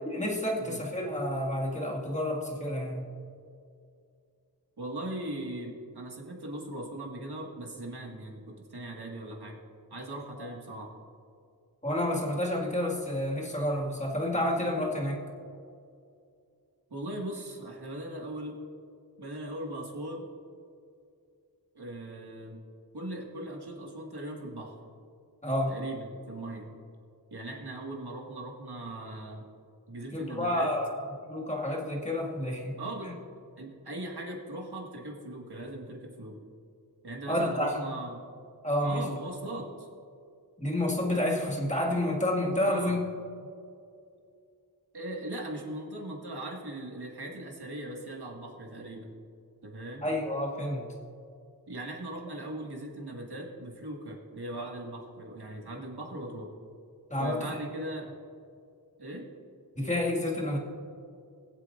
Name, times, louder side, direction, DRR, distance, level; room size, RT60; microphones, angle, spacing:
voice 1, 0.1-3.0 10.4-10.5 11.8-15.2 25.4-25.8 30.1-32.8 37.3-37.8 38.6-39.1 40.6-43.0 50.0-50.9 57.1-57.5 59.8-60.6, left 1 dB, 20° left, -2 dB, 2.0 m, -29 dB
voice 2, 4.8-9.6 9.9-10.9 16.9-18.6 19.2-20.3 21.7-22.6 22.9-24.8 25.7-26.7 27.3-29.5 29.9-30.7 32.8-33.2 33.6-36.4 37.0-38.2 38.8-39.9 42.6-43.0 44.9-49.1 49.6-50.1 51.7-56.5 57.2-58.1 59.0-59.3, right 1 dB, 80° right, -1 dB, 2.0 m, -39 dB
21.5 x 7.8 x 2.6 m, 2.4 s
wide cardioid pair, 55°, 38 cm